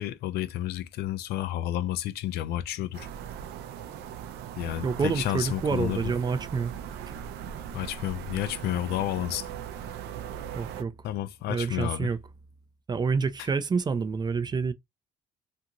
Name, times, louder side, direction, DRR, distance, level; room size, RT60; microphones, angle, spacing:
voice 1, 0.0-3.1 4.6-6.0 7.7-9.5 11.0-12.1, left 13 dB, 70° left, 0.4 m, -31 dB
sound 1, 2.9-10.8, right 9 dB, 75° right, 0.5 m, -39 dB
voice 2, 4.8-6.8 10.6-10.9 11.5-12.2 12.9-14.7, right 5 dB, 25° right, 0.4 m, -28 dB
2.5 x 2.4 x 2.8 m
cardioid pair, 110°, 17 cm